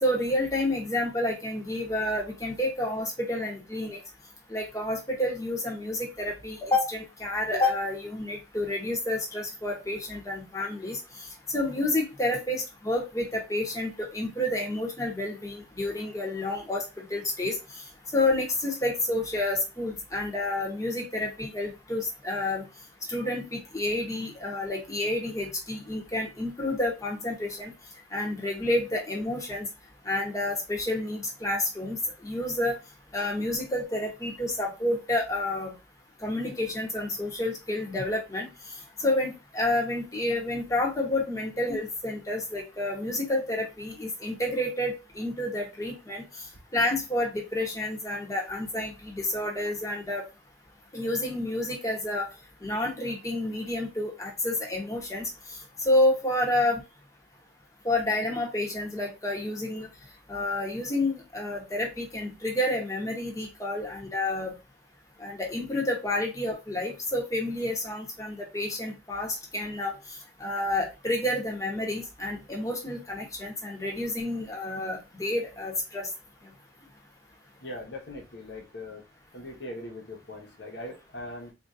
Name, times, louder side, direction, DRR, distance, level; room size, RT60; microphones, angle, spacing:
voice 1, 0.0-4.0 4.5-11.0 11.5-17.6 18.1-22.7 23.1-27.7 28.1-29.7 30.0-32.0 32.2-32.7 33.1-35.7 36.2-38.5 39.0-46.2 46.7-50.2 50.9-52.3 52.6-55.3 55.9-56.8 57.8-59.9 60.3-64.5 65.2-69.9 70.4-76.1, left 1 dB, 20° left, 0 dB, 1.0 m, -29 dB
voice 2, 77.6-79.0 79.3-81.5, left 1 dB, 75° left, 1 dB, 1.1 m, -40 dB
4.3 x 2.7 x 2.5 m, 0.27 s
head